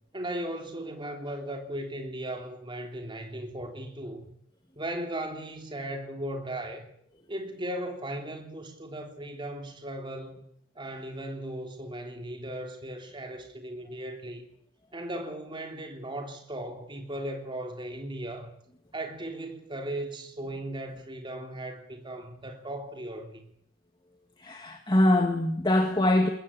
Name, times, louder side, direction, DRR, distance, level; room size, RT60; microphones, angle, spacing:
voice 1, 0.1-4.2 4.7-6.9 7.3-10.5 10.7-14.5 14.9-18.5 18.9-23.5, right 1 dB, 20° right, 3.4 m, -37 dB
voice 2, 24.4-26.3, left 1 dB, 20° left, 2.1 m, -23 dB
21.5 x 20.5 x 9.0 m
head